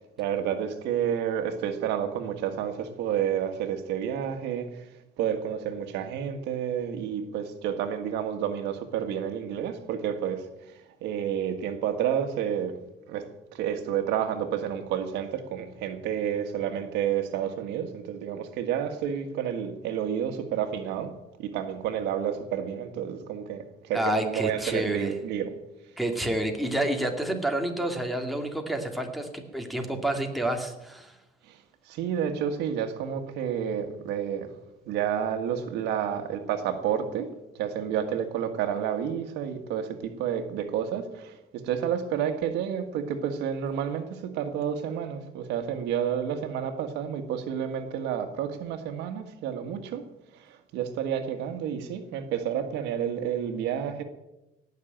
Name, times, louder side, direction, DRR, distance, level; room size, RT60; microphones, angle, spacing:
voice 1, 0.2-4.9 5.2-10.7 11.0-12.7 13.1-13.2 13.5-21.1 21.4-25.5 31.5-31.6 31.9-34.5 34.9-50.0 50.3-54.0, right 9 dB, 90° right, 7 dB, 1.6 m, -30 dB
voice 2, 23.9-25.1 26.0-31.1, right 1 dB, ahead, 2 dB, 2.4 m, -29 dB
18.0 x 6.6 x 9.0 m, 0.96 s
cardioid pair, 110°, 17 cm